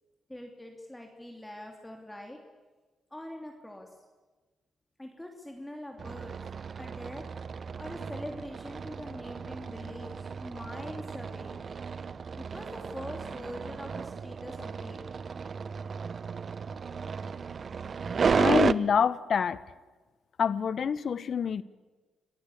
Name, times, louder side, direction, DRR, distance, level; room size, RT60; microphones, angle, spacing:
voice 1, 0.3-2.4 3.1-3.9 5.0-6.4 6.8-7.2 7.8-11.6 12.4-15.0, left 1 dB, 10° left, 2.8 m, -43 dB
sound 1, 6.0-18.7, right 5 dB, 50° right, 0.6 m, -33 dB
voice 2, 18.4-19.6 20.4-21.6, left 7 dB, 60° left, 0.9 m, -26 dB
26.0 x 15.0 x 8.6 m
cardioid pair, 70°, 0 cm